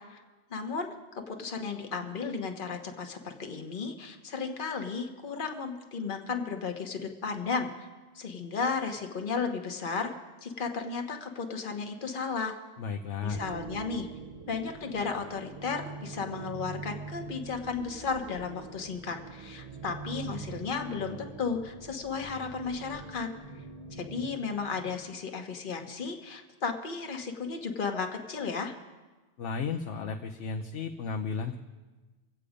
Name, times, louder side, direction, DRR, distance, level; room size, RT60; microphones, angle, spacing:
voice 1, 0.5-7.7 8.1-10.1 10.4-12.6 13.2-14.1 14.5-23.3 23.9-28.7, left 5 dB, 50° left, 4 dB, 1.3 m, -34 dB
voice 2, 12.8-13.4 29.4-31.6, left 5 dB, 85° left, 3 dB, 1.1 m, -34 dB
sound 1, 13.3-25.3, right 4 dB, 35° right, 0.7 m, -44 dB
24.0 x 8.4 x 5.1 m, 1.2 s
omnidirectional pair, 1.2 m